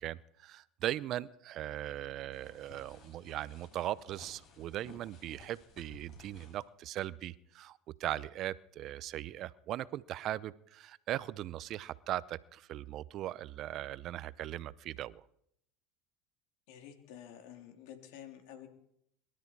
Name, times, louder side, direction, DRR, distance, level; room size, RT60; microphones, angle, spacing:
voice 1, 0.0-15.2, right 13 dB, 50° right, 19 dB, 0.7 m, -39 dB
sound 1, 2.3-6.6, left 3 dB, 50° left, 7.0 m, -57 dB
voice 2, 16.7-18.7, left 10 dB, 70° left, 5 dB, 3.5 m, -50 dB
23.5 x 12.5 x 4.7 m, 0.73 s
supercardioid pair, 105°, 0 cm